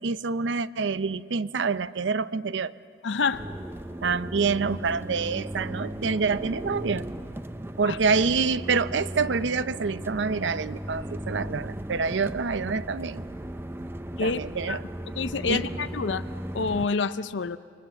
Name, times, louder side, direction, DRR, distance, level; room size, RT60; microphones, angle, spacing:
voice 1, 0.0-2.7 4.0-7.0 7.8-13.2 14.2-14.8 15.5-15.6, right 4 dB, 80° right, 15 dB, 0.6 m, -27 dB
voice 2, 3.0-3.4 7.8-8.0 14.2-14.4 14.7-14.8 15.2-16.2 16.5-17.6, left 4 dB, 80° left, 13 dB, 0.6 m, -27 dB
sound 1, 3.3-16.9, right 1 dB, 15° right, 0.6 m, -36 dB
28.0 x 24.0 x 7.0 m, 2.4 s
head